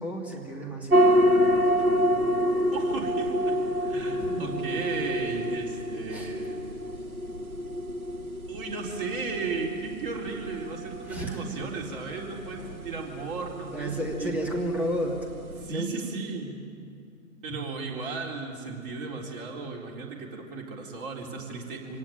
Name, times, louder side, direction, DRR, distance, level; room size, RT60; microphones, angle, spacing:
voice 1, 0.0-1.1 4.2-4.7 6.1-6.3 11.1-11.5 12.6-12.8 13.7-15.3 15.6-15.9, equal, 5° right, -1 dB, 2.6 m, -32 dB
sound 1, 0.9-15.7, equal, 80° right, 1.3 m, -28 dB
voice 2, 2.7-6.6 8.5-14.3 15.6-16.6 17.4-22.0, right 4 dB, 40° right, -1 dB, 3.9 m, -35 dB
25.5 x 18.0 x 9.0 m, 2.4 s
figure-of-eight pair, 125°, 43 cm